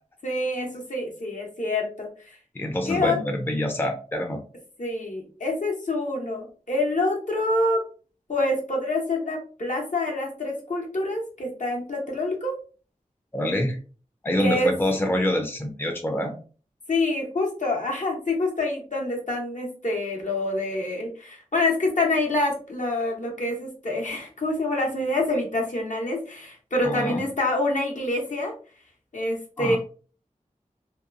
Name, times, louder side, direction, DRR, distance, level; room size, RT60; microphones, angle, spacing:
voice 1, 0.2-2.1 2.9-3.2 4.8-7.8 8.3-12.5 14.4-14.7 16.9-28.5 29.1-29.8, left 2 dB, 65° left, 0 dB, 0.9 m, -26 dB
voice 2, 2.5-4.4 13.3-13.8 14.2-16.4 26.8-27.2 29.6-29.8, left 1 dB, 15° left, 3 dB, 0.5 m, -26 dB
2.9 x 2.2 x 2.5 m, 0.38 s
wide cardioid pair, 60°, 14 cm